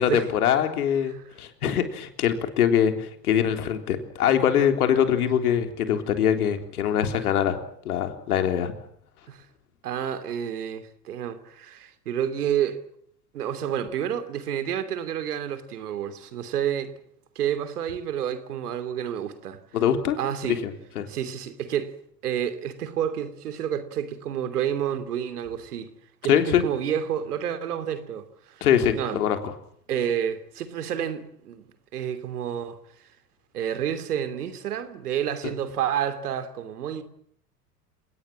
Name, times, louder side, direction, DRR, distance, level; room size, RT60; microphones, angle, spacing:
voice 1, 0.0-7.6 7.9-8.7 19.7-20.2 20.5-21.1 26.3-26.6 28.6-29.4, left 9 dB, 65° left, 3.7 m, -23 dB
voice 2, 9.8-12.8 13.3-16.9 17.3-19.6 20.2-20.6 21.1-21.9 22.2-25.9 26.2-28.7 28.9-29.2 29.9-31.7 31.9-33.1 33.5-37.0, right 9 dB, 70° right, 3.1 m, -29 dB
30.0 x 18.5 x 7.5 m
figure-of-eight pair, 80°, 48 cm